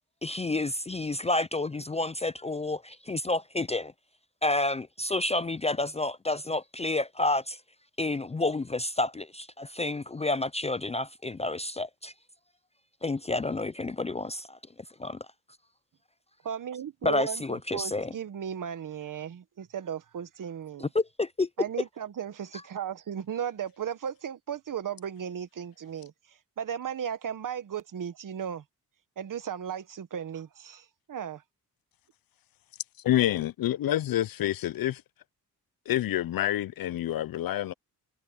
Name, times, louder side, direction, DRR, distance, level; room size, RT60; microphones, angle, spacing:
voice 1, 0.2-3.9 4.4-7.6 8.0-12.1 13.0-14.6 15.0-15.2 17.0-18.1 20.8-21.5, left 2 dB, 15° left, 0.5 m, -29 dB
voice 2, 16.4-20.9 21.6-26.1 26.6-28.6 29.2-31.4, right 8 dB, 55° right, 1.4 m, -36 dB
voice 3, 33.0-35.0 35.9-37.7, left 13 dB, 65° left, 0.6 m, -27 dB
cardioid pair, 90°, 37 cm